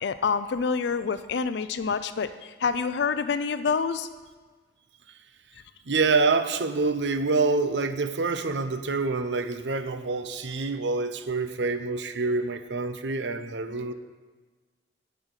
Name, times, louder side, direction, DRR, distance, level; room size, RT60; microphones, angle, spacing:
voice 1, 0.0-4.1 13.7-13.9, left 5 dB, 70° left, 12 dB, 0.4 m, -27 dB
voice 2, 5.9-13.9, right 3 dB, 80° right, 10 dB, 0.8 m, -26 dB
9.0 x 6.6 x 8.1 m, 1.4 s
head